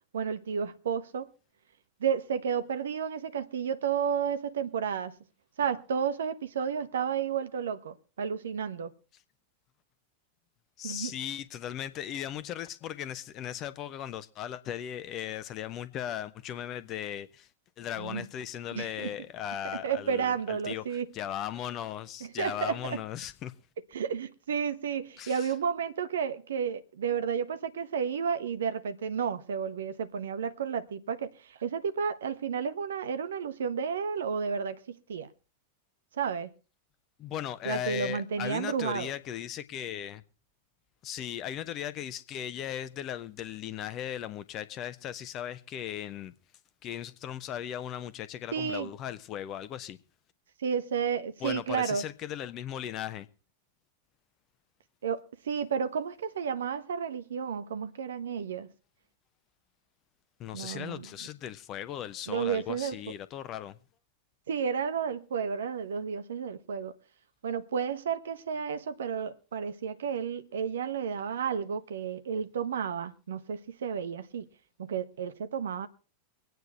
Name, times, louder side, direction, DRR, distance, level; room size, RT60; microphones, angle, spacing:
voice 1, 0.1-1.3 2.0-5.1 5.6-8.9 10.8-11.1 18.0-18.3 18.7-19.1 19.6-21.1 22.4-23.0 23.9-35.3 36.2-36.5 37.6-39.1 48.5-48.9 50.6-52.0 55.0-58.7 60.5-61.1 62.3-63.0 64.5-66.9 67.4-74.5 74.8-75.9, right 7 dB, 65° right, 1.1 m, -32 dB
voice 2, 10.8-17.5 17.8-23.5 25.2-25.5 37.2-40.2 41.0-46.3 46.8-50.0 51.4-53.3 60.4-63.8, left 10 dB, 35° left, 1.0 m, -37 dB
23.0 x 9.4 x 4.3 m
figure-of-eight pair, 90°, 0 cm